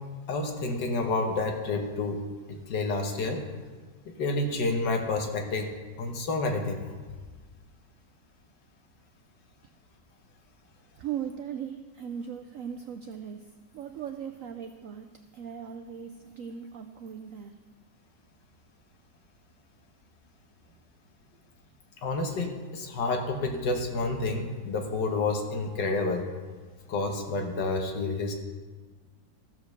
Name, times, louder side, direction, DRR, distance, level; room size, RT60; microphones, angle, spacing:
voice 1, 0.3-2.2 2.5-3.4 4.1-5.7 6.0-6.8 22.0-26.3 26.9-28.3, left 3 dB, 70° left, 4 dB, 1.8 m, -29 dB
voice 2, 11.0-13.5 13.7-17.5, right 8 dB, 80° right, 6 dB, 0.7 m, -38 dB
14.5 x 5.1 x 6.5 m, 1.4 s
omnidirectional pair, 2.0 m